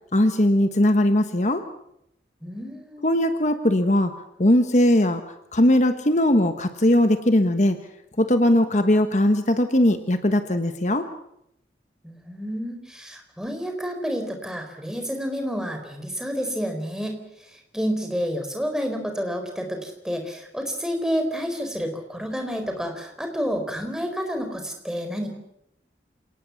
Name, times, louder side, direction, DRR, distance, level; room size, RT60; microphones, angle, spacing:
voice 1, 0.1-1.6 3.0-4.1 4.4-5.2 5.5-7.8 8.2-11.1, left 1 dB, 40° left, 8 dB, 1.3 m, -19 dB
voice 2, 2.4-3.0 12.0-17.2 17.5-25.3, equal, 5° right, 4 dB, 4.3 m, -29 dB
28.5 x 18.5 x 7.2 m, 0.78 s
head